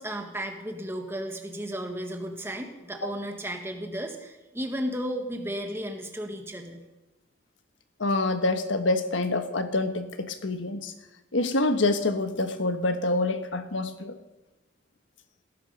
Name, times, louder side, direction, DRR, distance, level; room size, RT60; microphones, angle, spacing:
voice 1, 0.0-6.8, equal, 15° right, 4 dB, 1.7 m, -34 dB
voice 2, 8.0-10.9 11.3-14.2, left 2 dB, 90° left, 8 dB, 1.4 m, -26 dB
17.0 x 14.0 x 5.5 m, 1.0 s
head